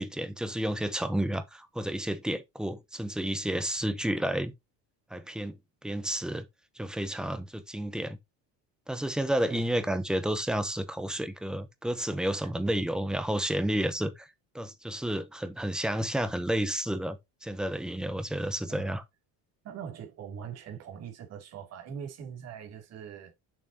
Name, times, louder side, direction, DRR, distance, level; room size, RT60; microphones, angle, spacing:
voice 1, 0.0-4.5 5.1-5.6 5.8-6.4 6.8-8.2 8.9-14.3 14.5-19.0, right 1 dB, ahead, 0.8 m, -31 dB
voice 2, 19.6-23.3, right 8 dB, 45° right, 2.8 m, -42 dB
7.4 x 6.0 x 2.8 m
cardioid pair, 150°, 35 cm